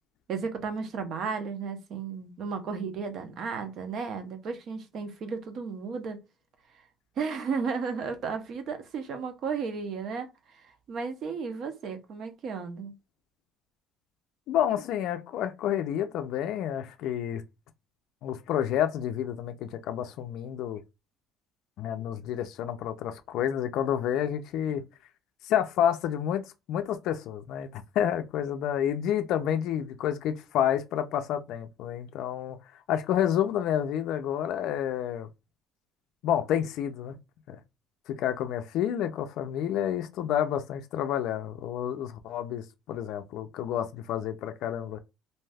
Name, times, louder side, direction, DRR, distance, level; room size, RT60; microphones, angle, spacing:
voice 1, 0.3-6.2 7.2-12.9, right 5 dB, 45° right, 0.6 m, -34 dB
voice 2, 14.5-17.4 18.2-20.8 21.8-24.8 25.4-32.6 32.9-35.3 36.2-37.1 37.5-37.6 38.1-45.0, left 10 dB, 60° left, 0.4 m, -29 dB
2.6 x 2.2 x 3.3 m
cardioid pair, 155°, 0 cm